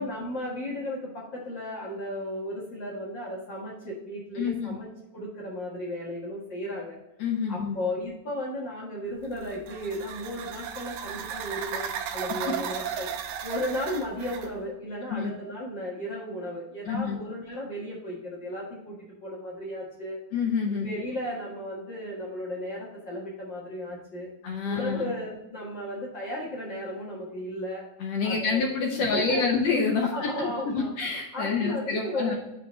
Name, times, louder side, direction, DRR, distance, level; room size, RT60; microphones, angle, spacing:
voice 1, 0.0-4.9 5.1-7.0 7.5-13.1 13.4-20.2 20.7-24.3 24.6-27.8 28.2-29.6 30.0-30.9 31.3-32.4, left 1 dB, 50° left, -5 dB, 1.5 m, -35 dB
voice 2, 4.4-4.8 7.2-7.8 15.1-15.3 16.9-17.2 20.3-20.9 24.4-25.1 28.0-32.4, left 5 dB, 75° left, 1 dB, 1.5 m, -27 dB
sound 1, 9.2-14.5, right 9 dB, 85° right, 2.4 m, -35 dB
7.0 x 5.1 x 4.2 m, 0.94 s
omnidirectional pair, 3.9 m